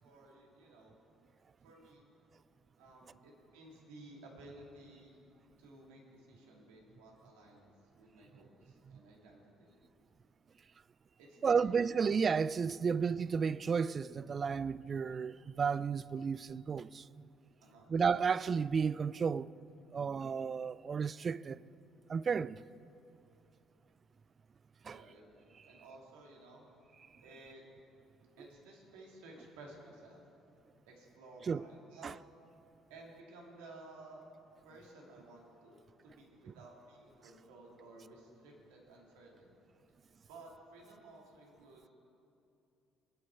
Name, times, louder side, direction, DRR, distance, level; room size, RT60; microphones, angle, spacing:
voice 1, 0.0-1.0 1.6-2.1 2.8-5.1 5.6-7.7 8.0-9.7 11.2-11.6 12.7-13.0 17.6-17.9 24.8-26.7 27.2-27.6 28.4-30.2 30.9-32.2 32.9-34.2 34.6-39.5 40.3-41.9, right 2 dB, 80° right, 2.4 m, -55 dB
voice 2, 11.4-17.0 17.9-19.5 19.9-21.6 22.1-22.6 24.9-25.0 31.5-31.6 32.0-32.1, right 6 dB, 40° right, 0.3 m, -32 dB
20.5 x 8.6 x 4.6 m
hypercardioid pair, 55°, 0 cm